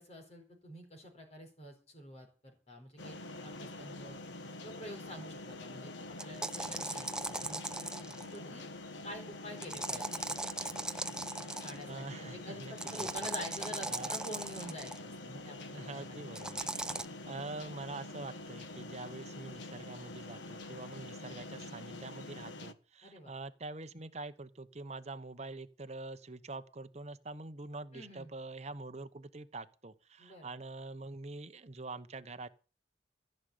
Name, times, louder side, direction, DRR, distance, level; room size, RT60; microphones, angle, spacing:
voice 1, 0.0-4.2 4.6-5.9 6.2-7.9 8.2-8.7 9.0-10.1 11.6-16.3 23.0-23.3 27.9-28.3 30.2-30.5, equal, 35° left, 4.6 m, -47 dB
sound 1, 3.0-22.7, left 2 dB, 85° left, 1.2 m, -46 dB
sound 2, 6.2-8.4 9.6-11.8 12.8-15.0 16.4-17.0, right 2 dB, 5° right, 0.6 m, -38 dB
voice 2, 11.9-13.1 13.9-14.2 15.7-16.6 17.2-32.5, right 3 dB, 40° right, 1.0 m, -45 dB
15.0 x 6.5 x 8.5 m
head